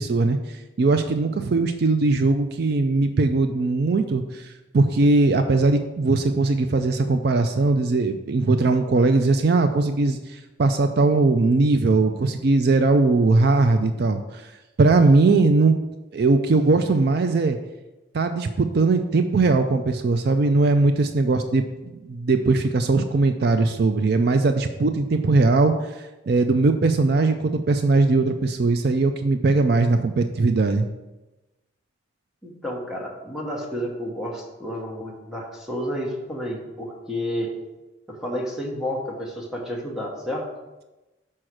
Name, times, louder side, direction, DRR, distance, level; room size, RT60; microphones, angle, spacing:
voice 1, 0.0-14.4 14.8-15.7 16.1-17.6 18.1-30.9, right 3 dB, 55° right, 7 dB, 0.4 m, -20 dB
voice 2, 32.4-37.5 38.1-40.5, equal, ahead, -2 dB, 1.2 m, -30 dB
6.4 x 4.3 x 6.1 m, 1.1 s
head